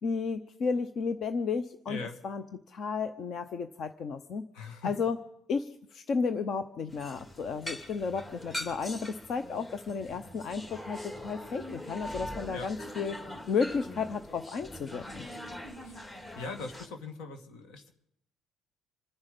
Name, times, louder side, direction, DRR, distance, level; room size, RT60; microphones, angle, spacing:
voice 1, 0.0-2.0 2.2-4.5 4.8-5.2 5.5-13.2 13.5-15.3, left 5 dB, 50° left, 10 dB, 0.8 m, -33 dB
voice 2, 4.5-4.9 12.5-12.7 15.8-16.0 16.4-17.9, left 4 dB, 80° left, 5 dB, 2.3 m, -40 dB
sound 1, 6.9-16.9, left 1 dB, 25° left, 2.9 m, -42 dB
27.0 x 9.8 x 5.4 m, 0.77 s
cardioid pair, 105°, 0 cm